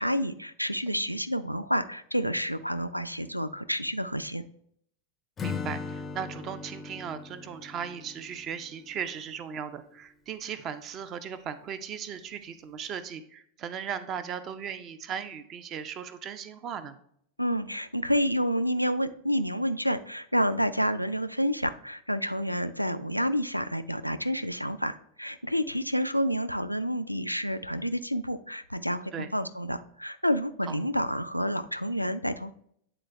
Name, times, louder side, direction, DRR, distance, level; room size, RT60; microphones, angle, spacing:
voice 1, 0.0-4.4 17.4-32.5, equal, 90° left, 12 dB, 0.3 m, -29 dB
Acoustic guitar / Strum, 5.4-9.3, left 5 dB, 25° left, 0.5 m, -39 dB
voice 2, 5.4-17.0 29.1-29.3 30.6-30.7, right 7 dB, 30° right, 11 dB, 0.6 m, -37 dB
8.9 x 3.9 x 3.2 m, 0.68 s
figure-of-eight pair, 90°, 0 cm